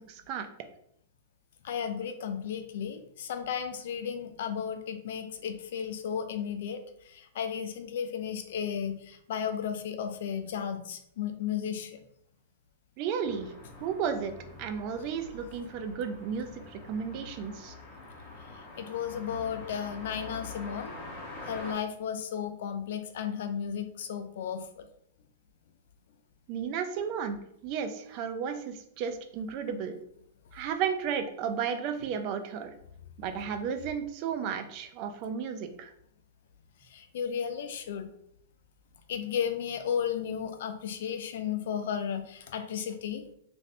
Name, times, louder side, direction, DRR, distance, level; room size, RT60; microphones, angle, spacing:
voice 1, 0.1-0.5 13.0-13.5 13.8-14.3 14.6-17.7 26.5-30.0 30.5-32.7 33.2-35.9, right 7 dB, 40° right, 7 dB, 0.4 m, -33 dB
voice 2, 1.6-6.8 7.1-12.0 18.8-21.0 21.4-24.8 36.9-38.1 39.1-43.2, left 8 dB, 65° left, 7 dB, 0.4 m, -34 dB
sound 1, 13.2-21.7, left 3 dB, 30° left, 0.9 m, -45 dB
2.6 x 2.6 x 3.2 m, 0.71 s
hypercardioid pair, 145°, 0 cm